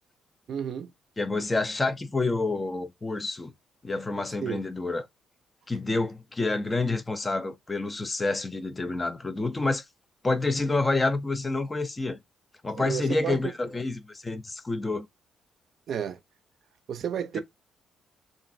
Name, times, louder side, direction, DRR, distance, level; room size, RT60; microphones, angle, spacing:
voice 1, 0.5-0.9 4.4-4.6 12.8-13.4 15.9-16.2 16.9-17.4, right 8 dB, 65° right, 0.4 m, -31 dB
voice 2, 1.2-3.5 3.8-5.0 5.7-9.8 10.2-12.2 12.6-15.1, left 3 dB, 20° left, 0.4 m, -28 dB
3.0 x 2.4 x 2.5 m
cardioid pair, 90°, 0 cm